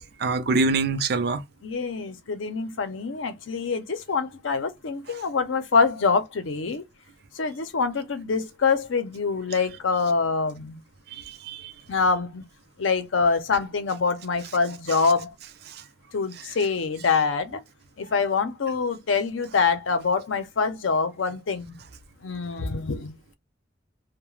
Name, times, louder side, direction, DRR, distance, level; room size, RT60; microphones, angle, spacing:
voice 1, 0.0-1.4 11.1-11.7 14.9-15.0 15.7-15.8 16.4-16.5, right 3 dB, 55° right, 0.5 m, -26 dB
voice 2, 1.6-6.8 7.3-10.8 11.9-12.4 12.8-15.3 16.1-17.6 18.0-21.8 22.2-23.1, left 4 dB, 90° left, 0.6 m, -25 dB
2.3 x 2.1 x 3.0 m
head